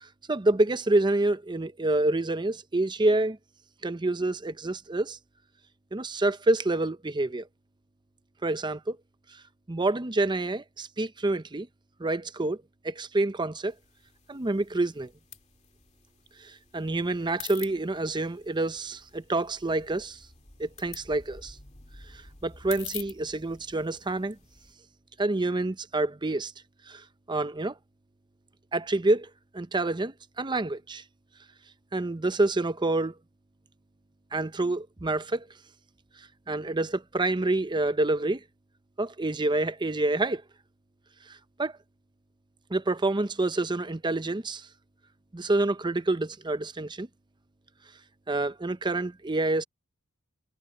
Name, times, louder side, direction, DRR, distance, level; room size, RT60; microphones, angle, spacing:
voice 1, 0.0-3.4 3.8-5.2 5.9-7.5 8.4-9.0 9.7-11.7 12.0-13.7 14.3-15.1 16.4-20.2 20.6-21.6 22.1-24.4 25.2-26.5 26.9-27.7 28.7-31.0 31.9-33.1 34.3-35.5 36.5-38.4 39.0-40.4 41.3-41.7 42.7-44.7 45.3-47.1 48.3-49.6, right 2 dB, 20° right, 0.7 m, -27 dB
sound 1, 13.7-24.7, left 7 dB, 30° left, 2.1 m, -48 dB
head